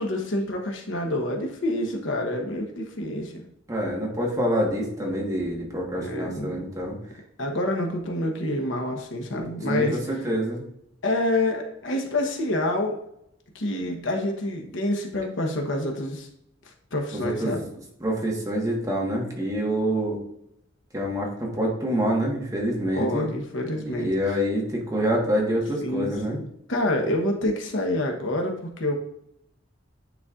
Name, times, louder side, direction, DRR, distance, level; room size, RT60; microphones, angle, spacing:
voice 1, 0.0-3.4 6.0-6.6 7.4-10.2 11.0-13.0 13.5-16.3 16.9-17.6 22.9-24.4 25.8-29.0, left 1 dB, 75° left, 2 dB, 1.0 m, -27 dB
voice 2, 3.7-7.0 9.7-10.6 17.1-17.6 18.0-20.2 20.9-23.3 23.9-26.4, equal, 20° right, -1 dB, 1.3 m, -26 dB
9.2 x 4.2 x 2.4 m, 0.76 s
head